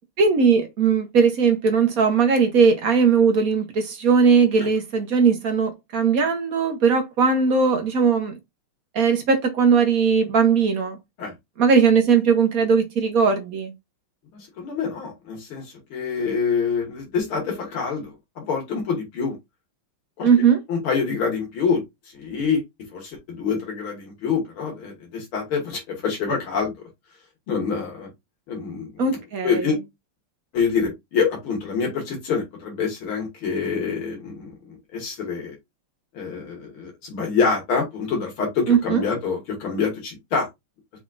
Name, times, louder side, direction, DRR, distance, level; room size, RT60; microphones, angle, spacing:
voice 1, 0.2-8.4 8.9-11.0 11.6-13.7 20.2-20.6 29.0-29.7 38.7-39.0, right 5 dB, 50° right, 1.2 m, -19 dB
voice 2, 14.3-19.4 20.2-21.8 22.1-22.6 22.9-26.7 27.5-28.1 28.5-29.2 29.4-29.8 30.5-35.5 36.1-40.5, left 5 dB, 80° left, 2.5 m, -26 dB
6.2 x 3.5 x 2.5 m
omnidirectional pair, 2.3 m